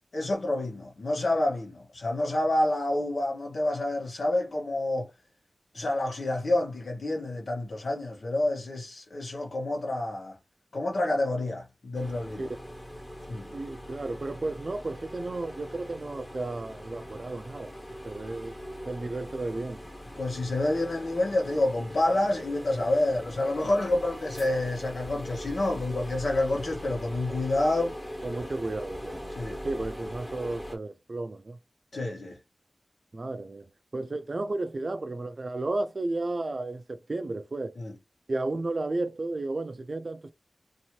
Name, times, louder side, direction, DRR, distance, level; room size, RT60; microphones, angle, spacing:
voice 1, 0.1-5.1 5.7-10.4 10.7-12.5 13.3-13.5 20.2-28.0 29.4-29.6 31.9-32.4 37.8-37.9, left 1 dB, 80° left, 1.2 m, -28 dB
sound 1, 11.9-30.8, equal, 20° left, 1.1 m, -41 dB
voice 2, 13.5-17.7 18.0-18.5 18.9-19.9 28.2-29.3 29.6-31.6 33.1-37.7 38.3-40.3, right 2 dB, 55° right, 0.4 m, -33 dB
2.7 x 2.6 x 3.0 m
wide cardioid pair, 80°, 0 cm